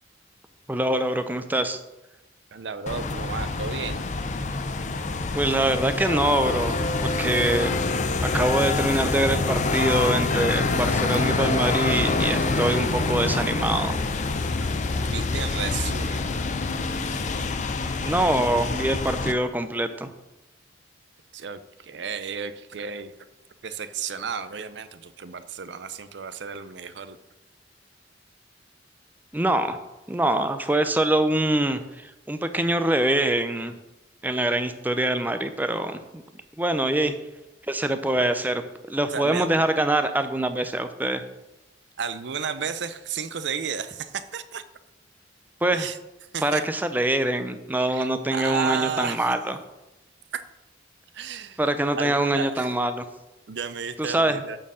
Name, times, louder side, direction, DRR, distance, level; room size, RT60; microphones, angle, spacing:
voice 1, 0.7-1.8 5.3-7.8 8.2-14.0 18.0-20.1 29.3-29.8 30.1-33.7 34.2-36.2 36.6-37.1 37.7-38.6 38.9-41.2 45.6-45.9 46.4-49.6 51.6-53.0 54.0-54.4, right 1 dB, 10° right, 9 dB, 0.5 m, -24 dB
voice 2, 2.5-4.0 14.6-16.3 21.3-23.1 23.6-27.2 37.0-37.2 39.1-39.5 42.0-44.6 45.7-46.0 46.3-46.6 47.9-49.3 50.3-50.4 51.1-51.6 52.0-52.7 53.5-54.6, right 6 dB, 70° right, 13 dB, 0.5 m, -33 dB
sound 1, 2.9-19.3, left 3 dB, 40° left, 0.5 m, -26 dB
9.0 x 4.5 x 6.3 m, 0.98 s
head